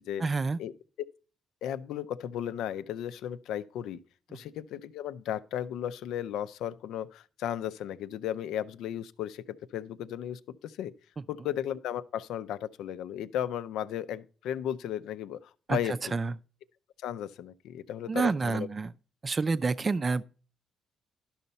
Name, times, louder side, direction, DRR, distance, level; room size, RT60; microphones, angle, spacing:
voice 1, 0.2-0.6 4.3-4.4 15.7-16.3 18.1-18.9 19.2-20.2, right 4 dB, 35° right, 0.4 m, -28 dB
voice 2, 1.6-4.0 4.3-10.9 11.3-16.2 17.0-18.7, left 10 dB, 85° left, 0.5 m, -35 dB
12.0 x 5.6 x 4.0 m
cardioid pair, 90°, 0 cm